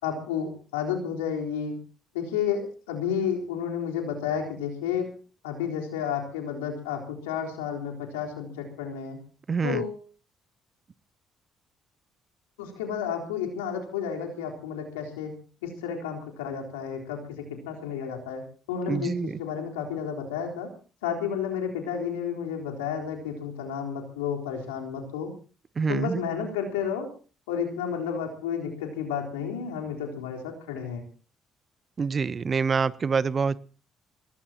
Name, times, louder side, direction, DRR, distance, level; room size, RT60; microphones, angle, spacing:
voice 1, 0.0-1.7 2.1-5.1 5.4-9.2 9.6-10.0 12.6-15.3 15.6-20.7 21.0-25.3 25.9-27.1 27.5-31.0, left 7 dB, 85° left, 1 dB, 3.9 m, -31 dB
voice 2, 9.5-9.8 18.9-19.4 25.8-26.2 32.0-33.6, right 5 dB, 40° right, 19 dB, 0.8 m, -26 dB
23.5 x 18.5 x 2.9 m, 0.37 s
hypercardioid pair, 50°, 0 cm